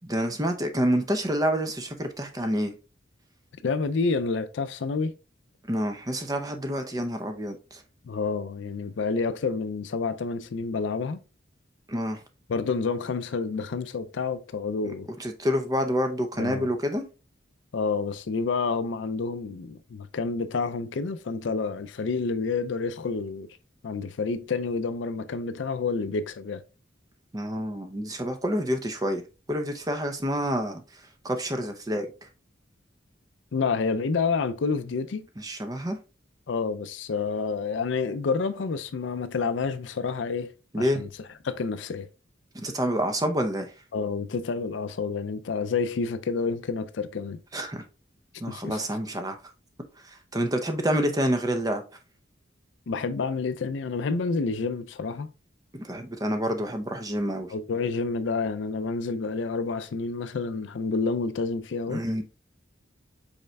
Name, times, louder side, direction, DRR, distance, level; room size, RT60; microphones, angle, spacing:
voice 1, 0.1-2.7 5.7-7.6 11.9-12.2 15.2-17.0 27.3-29.2 29.5-30.8 31.2-32.1 35.4-36.0 40.7-41.0 42.5-43.7 47.5-47.8 48.4-49.4 50.3-51.8 55.7-57.5 61.9-62.2, equal, 20° right, 0.6 m, -27 dB
voice 2, 3.6-5.1 8.1-11.2 12.5-15.1 16.4-16.7 17.7-23.5 23.8-26.6 33.5-35.3 36.5-42.1 43.9-47.4 48.5-48.8 52.9-55.3 57.5-62.0, left 4 dB, 70° left, 0.4 m, -29 dB
5.4 x 4.3 x 2.3 m
head